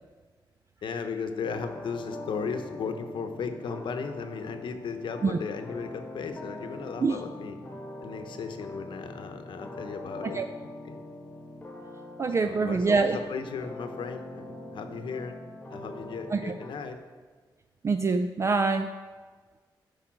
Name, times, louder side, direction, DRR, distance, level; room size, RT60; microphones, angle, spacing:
voice 1, 0.8-7.6 8.0-10.5 10.8-11.0 12.4-15.4 15.7-17.0, left 5 dB, 75° left, 7 dB, 0.9 m, -36 dB
sound 1, 1.4-16.7, left 1 dB, 20° left, 1.2 m, -43 dB
voice 2, 12.2-13.2 16.3-16.5 17.8-18.9, right 4 dB, 35° right, 7 dB, 0.4 m, -25 dB
12.0 x 4.8 x 6.0 m, 1.4 s
wide cardioid pair, 145°, 8 cm